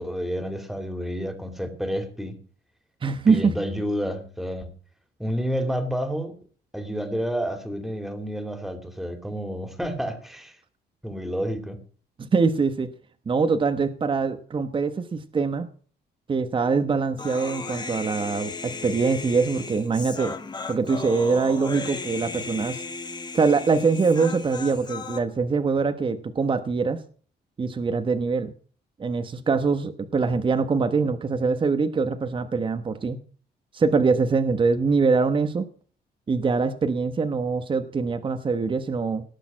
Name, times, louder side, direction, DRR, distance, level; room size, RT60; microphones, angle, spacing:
voice 1, 0.0-2.4 3.3-4.7 5.2-6.4 6.7-10.6 11.0-11.8, equal, ahead, 8 dB, 2.7 m, -30 dB
voice 2, 3.0-3.5 12.2-12.9 13.3-15.7 16.3-20.4 20.7-22.8 23.3-27.0 27.6-28.5 29.0-33.2 33.7-35.7 36.3-39.2, right 4 dB, 30° right, 9 dB, 1.1 m, -23 dB
Human voice, 17.2-25.2, left 4 dB, 25° left, 1.7 m, -35 dB
18.5 x 6.8 x 7.4 m, 0.43 s
cardioid pair, 135°, 17 cm